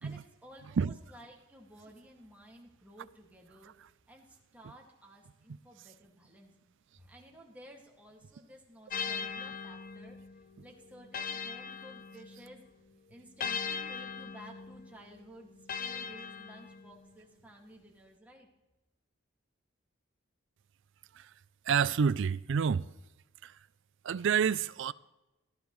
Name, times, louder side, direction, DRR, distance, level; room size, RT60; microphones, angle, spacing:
voice 1, 0.0-3.7 4.1-6.6 7.0-10.2 10.6-12.6 13.1-15.5 15.8-18.5, equal, 10° right, 2.1 m, -54 dB
sound 1, 8.9-12.6 13.4-17.1, left 6 dB, 45° left, 0.6 m, -40 dB
voice 2, 21.7-22.9 23.4-23.6 24.0-24.9, right 6 dB, 65° right, 0.4 m, -28 dB
18.5 x 14.0 x 3.2 m
head